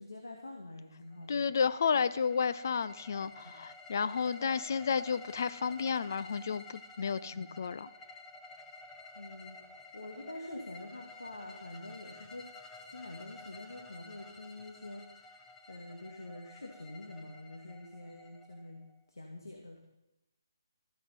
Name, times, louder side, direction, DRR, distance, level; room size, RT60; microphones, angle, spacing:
voice 1, 0.0-1.5 3.4-3.5 7.2-7.5 9.2-12.4 12.8-15.4 15.7-18.8 19.1-19.8, left 2 dB, 75° left, 1 dB, 2.0 m, -46 dB
sound 1, 1.1-19.0, left 2 dB, 10° left, 1.0 m, -52 dB
voice 2, 1.3-7.9, left 6 dB, 50° left, 15 dB, 0.5 m, -32 dB
14.0 x 10.0 x 5.2 m, 0.91 s
figure-of-eight pair, 145°, 2 cm